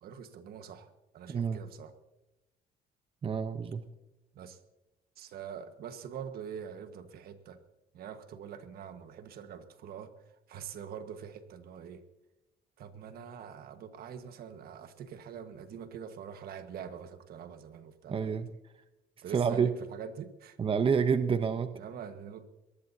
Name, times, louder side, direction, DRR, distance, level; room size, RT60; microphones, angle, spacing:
voice 1, 0.0-1.9 4.3-4.6 5.2-7.6 7.9-10.1 10.5-12.1 12.8-18.4 19.2-20.6 21.7-22.5, right 7 dB, 65° right, 9 dB, 1.5 m, -44 dB
voice 2, 1.3-1.6 3.2-3.8 18.1-18.5 19.3-19.7 20.6-21.7, right 6 dB, 30° right, 10 dB, 0.8 m, -28 dB
23.5 x 19.5 x 2.8 m, 1.0 s
cardioid pair, 110°, 17 cm